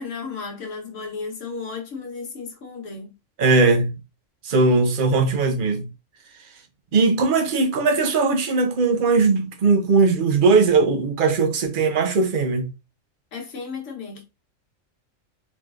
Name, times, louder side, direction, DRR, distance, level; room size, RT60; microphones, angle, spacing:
voice 1, 0.0-3.1 13.3-14.2, left 4 dB, 65° left, 1.4 m, -34 dB
voice 2, 3.4-3.9 4.4-5.9 6.9-12.7, right 4 dB, 45° right, 0.8 m, -19 dB
4.0 x 3.2 x 2.4 m
omnidirectional pair, 1.4 m